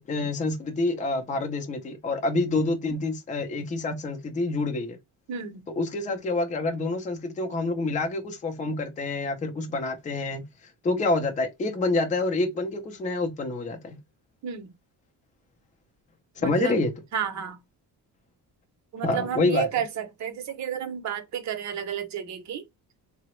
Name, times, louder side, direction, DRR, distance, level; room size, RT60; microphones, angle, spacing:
voice 1, 0.0-5.0 5.8-10.5 10.8-14.0 16.4-16.9 19.0-19.7, left 2 dB, 20° left, 0.5 m, -27 dB
voice 2, 5.3-5.6 14.4-14.7 16.4-16.8 17.1-17.6 18.9-22.6, right 8 dB, 45° right, 0.7 m, -31 dB
3.7 x 2.0 x 3.0 m
cardioid pair, 170°, 39 cm